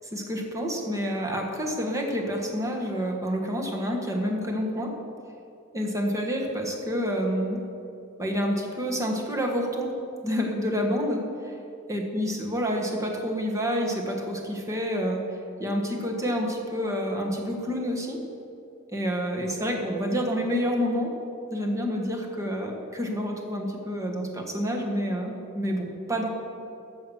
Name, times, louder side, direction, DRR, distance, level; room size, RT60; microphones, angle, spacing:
voice 1, 0.1-4.9 5.7-7.6 8.2-9.9 10.2-11.5 11.9-15.2 15.6-18.2 18.9-21.1 21.5-26.3, equal, 15° right, 1 dB, 1.5 m, -28 dB
14.0 x 5.9 x 7.2 m, 2.7 s
head